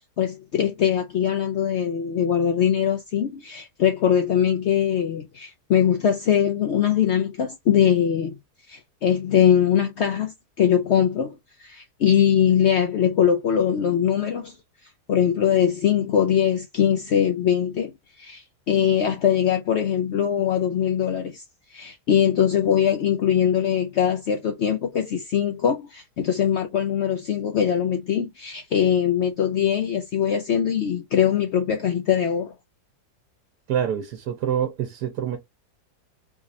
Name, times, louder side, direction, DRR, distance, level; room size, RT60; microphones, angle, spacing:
voice 1, 0.2-8.4 8.7-14.5 15.1-21.4 21.7-32.5, left 9 dB, 70° left, 0.6 m, -22 dB
voice 2, 33.7-35.4, right 9 dB, 75° right, 1.3 m, -26 dB
3.5 x 3.1 x 2.7 m
omnidirectional pair, 1.7 m